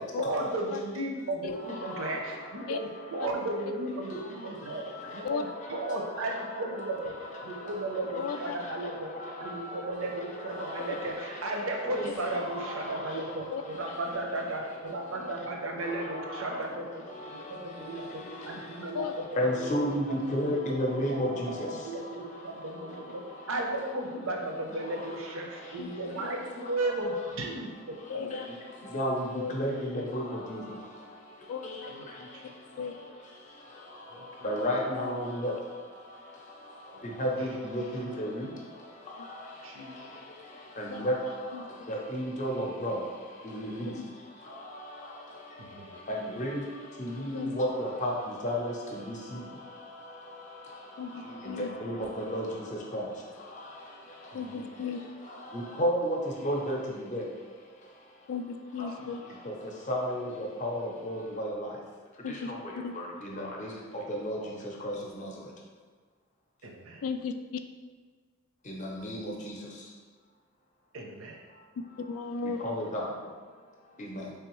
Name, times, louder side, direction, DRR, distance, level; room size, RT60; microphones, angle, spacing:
voice 1, 0.2-4.8 5.1-7.1 7.4-9.1 9.4-17.0 17.3-23.2 23.5-28.3 29.5-29.7 31.9-32.5 34.1-34.5 36.9-37.6 39.6-40.2 45.6-45.9 51.1-51.5 54.3-54.7 58.9-59.1 66.6-67.0 70.9-71.4, right 2 dB, 70° right, 1 dB, 0.6 m, -35 dB
voice 2, 1.7-2.2 4.6-6.2 7.4-7.8 8.2-8.3 8.6-10.0 10.5-11.5 12.0-12.1 12.4-13.3 13.8-13.9 15.8-16.7 17.1-18.9 19.4-22.7 22.9-23.2 25.6-25.8 28.3-58.3 58.8-61.8 62.1-65.5 68.6-69.9 71.5-71.6 72.6-74.3, equal, 35° left, -1 dB, 0.6 m, -35 dB
voice 3, 8.2-8.6 13.5-13.6 18.9-19.1 25.8-25.9 26.2-26.4 28.1-28.5 29.3-29.5 31.5-31.9 32.8-32.9 39.2-39.3 40.9-41.1 41.5-41.7 43.9-44.0 47.3-47.5 51.0-51.7 54.3-55.0 58.3-59.2 62.2-62.9 67.0-67.3 72.1-72.6, left 5 dB, 80° left, 9 dB, 0.3 m, -35 dB
3.7 x 3.4 x 3.0 m, 1.5 s
head